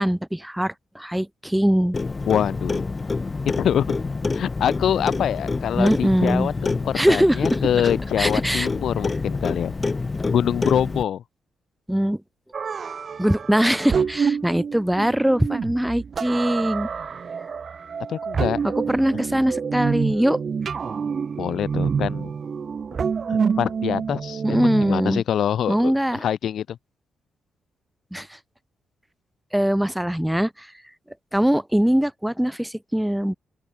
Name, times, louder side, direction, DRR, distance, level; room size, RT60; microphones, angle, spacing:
voice 1, 0.0-2.0 5.8-6.5 6.9-7.6 8.2-8.7 11.9-12.2 13.2-16.9 18.6-20.4 24.4-25.2 25.7-26.2 28.1-28.4 29.5-30.7 31.3-33.3, equal, 5° right, 1.7 m, -22 dB
Clock, 1.9-11.0, left 3 dB, 35° left, 1.4 m, -27 dB
voice 2, 2.3-2.8 3.6-3.9 4.3-9.7 10.3-11.2 18.1-18.6 21.4-22.3 23.3-26.8, left 9 dB, 65° left, 1.0 m, -25 dB
sound 1, 12.5-25.1, right 6 dB, 50° right, 3.1 m, -27 dB
open air
hypercardioid pair, 45°, 0 cm